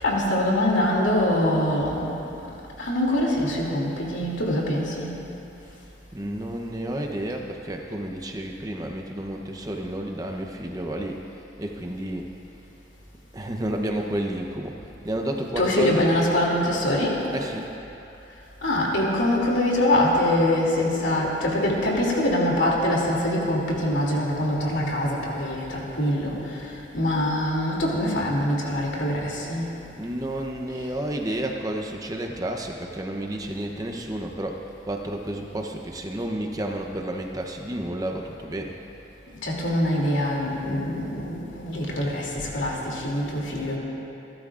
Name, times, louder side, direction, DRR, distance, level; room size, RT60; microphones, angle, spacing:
voice 1, 0.0-2.1 2.8-5.1 15.6-17.2 18.6-26.4 26.9-29.7 39.4-43.8, left 1 dB, 80° left, -3 dB, 2.8 m, -24 dB
voice 2, 6.1-11.2 11.6-12.3 13.3-14.8 15.0-16.1 17.3-17.7 30.0-38.8, right 1 dB, 20° right, 2 dB, 0.8 m, -31 dB
28.5 x 12.0 x 2.5 m, 2.9 s
head